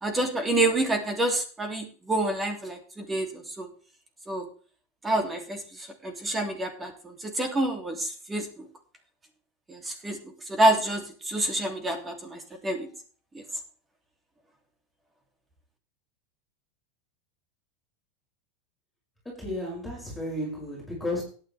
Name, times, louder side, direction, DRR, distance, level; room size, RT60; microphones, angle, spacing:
voice 1, 0.0-3.7 4.3-4.5 5.0-8.7 9.7-10.2 10.5-12.9 13.3-13.4, right 1 dB, 15° right, 5 dB, 2.9 m, -28 dB
voice 2, 19.2-21.2, left 1 dB, 5° left, -4 dB, 6.7 m, -33 dB
16.5 x 9.7 x 3.4 m, 0.41 s
supercardioid pair, 135°, 0 cm